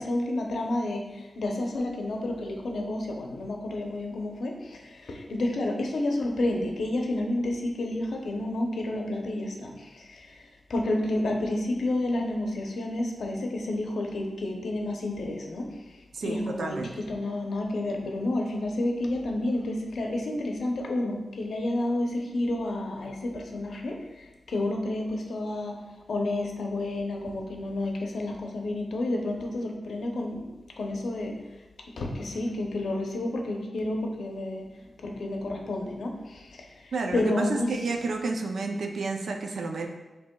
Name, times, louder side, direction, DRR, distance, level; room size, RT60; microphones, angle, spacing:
voice 1, 0.0-9.7 10.1-10.2 10.7-15.7 16.2-23.9 24.5-25.8 26.1-30.5 30.8-31.4 32.0-34.7 35.0-36.4 37.1-37.7, left 1 dB, 90° left, 2 dB, 0.7 m, -30 dB
voice 2, 16.1-16.9 36.9-39.9, right 3 dB, 85° right, 4 dB, 0.5 m, -31 dB
7.3 x 3.0 x 2.3 m, 1.1 s
wide cardioid pair, 145°, 0 cm